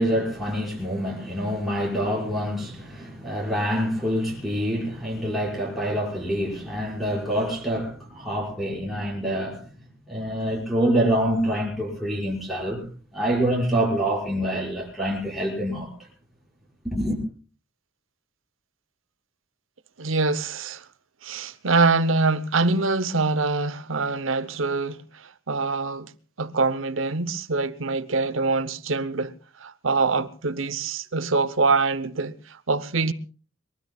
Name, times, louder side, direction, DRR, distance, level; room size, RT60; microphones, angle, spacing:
voice 1, 0.0-9.6 10.1-12.9 13.1-15.9 16.8-17.2, equal, ahead, 6.0 m, -26 dB
voice 2, 20.0-20.8 21.2-26.1 26.4-29.3 29.6-33.1, right 3 dB, 85° right, 0.9 m, -24 dB
22.5 x 22.5 x 2.4 m
head